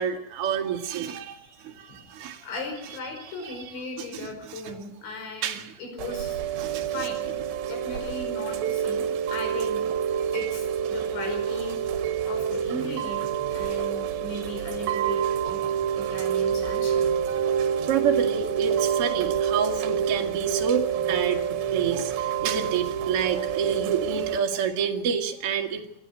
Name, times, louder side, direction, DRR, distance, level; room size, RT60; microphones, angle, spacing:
voice 1, 0.0-2.5 3.2-3.7 4.0-4.6 5.4-5.7 6.6-7.1 17.9-25.8, right 7 dB, 50° right, 2 dB, 1.9 m, -28 dB
voice 2, 2.4-6.4 6.9-7.3 7.7-9.8 10.3-13.3 13.5-15.7 16.0-17.1, left 2 dB, 75° left, 4 dB, 7.4 m, -37 dB
Chime / Rain, 6.0-24.4, right 8 dB, 65° right, 2.8 m, -27 dB
27.5 x 12.0 x 8.2 m, 0.75 s
omnidirectional pair, 5.3 m